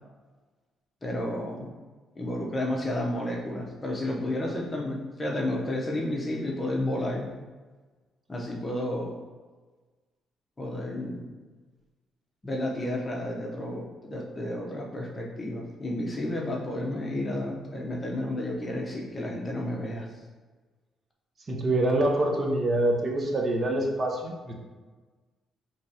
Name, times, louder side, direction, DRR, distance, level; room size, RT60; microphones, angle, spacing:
voice 1, 1.0-1.7 2.2-7.3 8.3-9.1 10.6-11.3 12.4-20.1, left 1 dB, 25° left, -1 dB, 0.8 m, -31 dB
voice 2, 21.5-24.5, right 1 dB, 35° right, 0 dB, 0.7 m, -25 dB
4.9 x 3.0 x 2.8 m, 1.4 s
cardioid pair, 90°, 0 cm